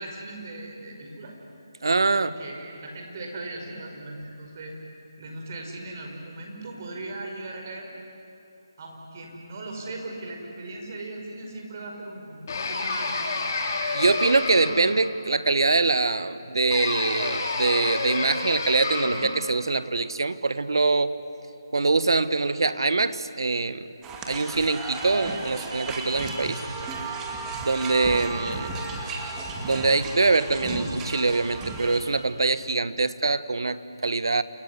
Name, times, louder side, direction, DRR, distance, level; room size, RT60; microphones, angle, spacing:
voice 1, 0.0-1.4 2.1-4.8 5.2-7.9 8.8-13.3, right 2 dB, 40° right, 1 dB, 5.5 m, -38 dB
voice 2, 1.8-2.3 13.9-21.1 21.7-23.9 24.3-26.6 27.6-28.7 29.6-34.4, right 3 dB, 70° right, 14 dB, 1.3 m, -24 dB
sound 1, 12.5-15.0 16.7-19.3, left 3 dB, 45° left, 4.5 m, -29 dB
sound 2, 24.0-32.0, right 3 dB, 10° right, 2.3 m, -34 dB
29.0 x 20.5 x 9.8 m, 2.7 s
figure-of-eight pair, 160°, 2 cm